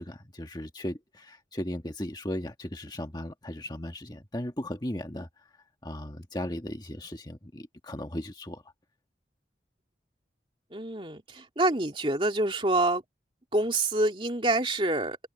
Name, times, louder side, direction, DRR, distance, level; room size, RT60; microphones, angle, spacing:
voice 1, 0.0-5.3 5.8-8.6, left 1 dB, 25° left, 1.5 m, -36 dB
voice 2, 10.7-13.0 13.5-15.2, right 2 dB, 30° right, 2.7 m, -26 dB
head